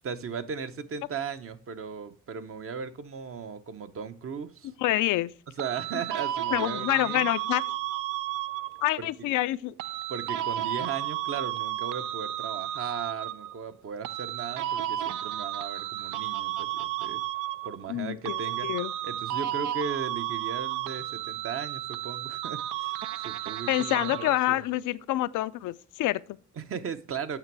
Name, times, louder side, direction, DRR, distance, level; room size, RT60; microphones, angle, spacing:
voice 1, 0.0-4.7 5.6-7.3 9.0-9.1 10.1-17.2 17.6-18.7 19.0-24.7 26.6-27.4, right 6 dB, 45° right, 0.8 m, -37 dB
voice 2, 4.8-5.3 6.5-7.6 8.8-9.7 17.9-18.9 23.7-26.4, left 16 dB, 80° left, 0.4 m, -27 dB
sound 1, 5.6-8.9 9.8-13.6 14.0-18.0 18.2-24.6, right 12 dB, 90° right, 0.5 m, -33 dB
8.9 x 5.9 x 4.6 m
cardioid pair, 90°, 30 cm